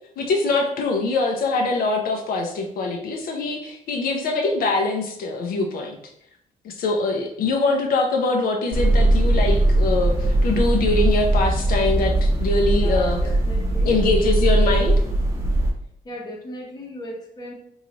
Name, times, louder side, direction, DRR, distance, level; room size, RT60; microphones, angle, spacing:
voice 1, 0.2-6.0 6.6-13.2 13.9-15.0, left 3 dB, 75° left, 2 dB, 0.5 m, -23 dB
sound 1, 8.7-15.7, right 1 dB, 20° right, 0.6 m, -20 dB
voice 2, 12.7-14.0 16.0-17.5, left 1 dB, 25° left, -1 dB, 0.8 m, -37 dB
3.1 x 2.3 x 3.8 m, 0.71 s
cardioid pair, 155°, 15 cm